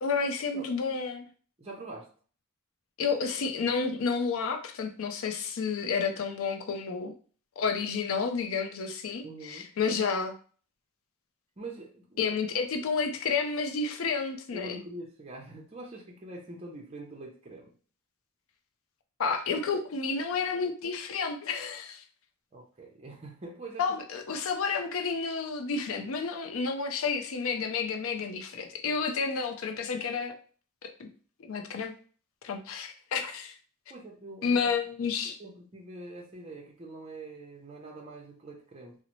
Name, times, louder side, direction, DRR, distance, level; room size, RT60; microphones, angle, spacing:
voice 1, 0.0-1.2 3.0-7.1 7.6-10.3 12.2-14.8 19.2-22.0 23.8-30.4 30.8-31.1 31.4-31.9 32.4-33.5 34.4-35.4, left 5 dB, 70° left, 5 dB, 0.4 m, -30 dB
voice 2, 1.6-2.1 9.2-9.7 11.6-12.2 14.5-17.7 22.5-23.8 33.9-34.7 35.2-39.0, right 2 dB, 30° right, -1 dB, 0.6 m, -44 dB
3.9 x 2.0 x 2.9 m, 0.42 s
head